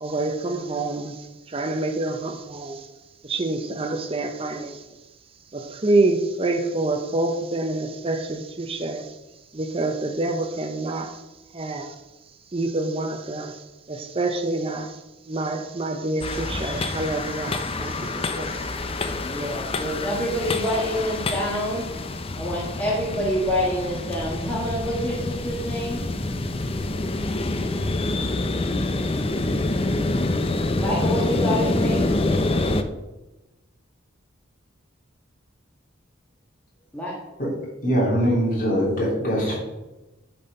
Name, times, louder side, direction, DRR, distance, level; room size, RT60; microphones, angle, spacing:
voice 1, 0.0-1.1 1.5-2.8 3.3-4.8 5.5-9.1 9.5-11.2 11.5-11.9 12.5-13.6 13.9-14.9 15.3-17.9 18.3-18.6, right 2 dB, 30° right, 0.6 m, -26 dB
sound 1, 16.2-32.8, left 2 dB, 30° left, 0.5 m, -26 dB
voice 2, 19.2-21.9 22.3-26.0 30.7-32.1 36.9-37.1, equal, 10° left, 1.4 m, -27 dB
voice 3, 37.8-39.6, equal, 45° left, 3.1 m, -22 dB
8.8 x 4.3 x 5.3 m
head